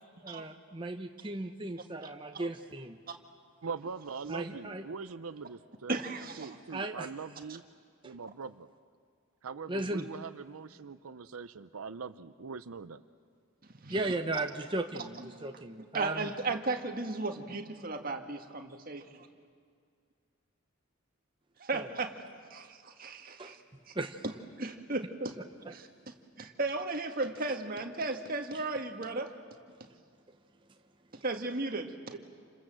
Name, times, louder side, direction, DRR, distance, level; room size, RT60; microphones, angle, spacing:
voice 1, 0.2-3.0 4.3-4.8 6.7-7.1 8.0-8.2 9.7-10.1 13.9-16.3 21.7-21.9 23.4-23.6 23.9-24.2, right 2 dB, 25° right, 5 dB, 0.9 m, -36 dB
voice 2, 3.6-5.9 6.4-7.6 8.0-8.7 9.4-13.0, right 5 dB, 85° right, 12 dB, 0.7 m, -42 dB
voice 3, 5.9-6.6 13.8-14.1 15.2-15.4 15.9-19.3 21.6-22.2 22.5-23.6 23.9-24.0 24.2-24.3 24.6-25.4 25.7-29.3 31.2-32.2, right 3 dB, 40° right, 5 dB, 1.8 m, -35 dB
29.0 x 26.5 x 7.7 m, 2.1 s
head